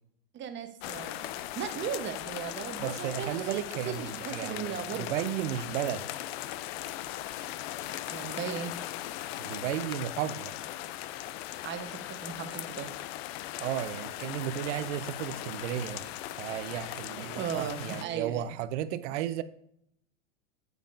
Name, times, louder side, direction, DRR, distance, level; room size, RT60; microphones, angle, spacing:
voice 1, 0.3-1.2 1.5-5.1 8.1-8.7 11.6-12.9 17.3-18.5, right 8 dB, 30° right, 1.0 m, -37 dB
sound 1, 0.8-18.0, left 14 dB, 50° left, 0.5 m, -39 dB
voice 2, 2.8-6.1 9.4-10.6 13.6-16.1 16.4-19.4, right 11 dB, 60° right, 0.7 m, -34 dB
9.1 x 7.4 x 2.5 m
hypercardioid pair, 115°, 39 cm